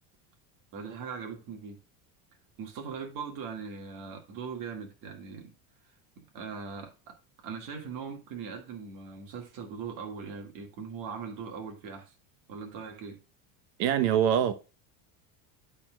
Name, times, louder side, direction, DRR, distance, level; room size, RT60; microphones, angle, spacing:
voice 1, 0.7-1.8 2.6-5.5 6.3-7.2 7.4-12.1 12.5-13.2, right 6 dB, 50° right, 1.9 m, -40 dB
voice 2, 13.8-14.5, right 9 dB, 85° right, 1.1 m, -24 dB
13.0 x 4.4 x 2.3 m
cardioid pair, 165°, 41 cm